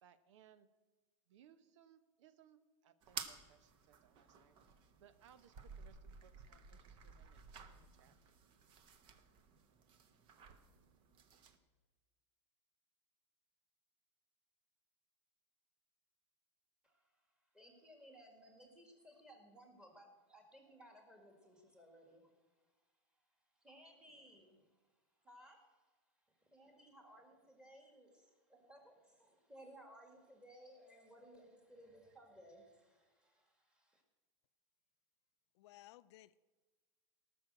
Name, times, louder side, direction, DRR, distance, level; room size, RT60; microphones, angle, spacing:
voice 1, 0.0-0.7 1.3-4.6 5.0-8.1, right 9 dB, 75° right, 0.9 m, -66 dB
sound 1, 3.0-11.6, right 6 dB, 35° right, 1.0 m, -54 dB
voice 2, 17.5-22.3 23.6-24.6 25.2-25.6 26.5-34.0, equal, 5° right, 1.9 m, -60 dB
voice 3, 35.5-36.4, left 16 dB, 60° left, 0.4 m, -59 dB
18.0 x 6.4 x 7.6 m
supercardioid pair, 160°, 16 cm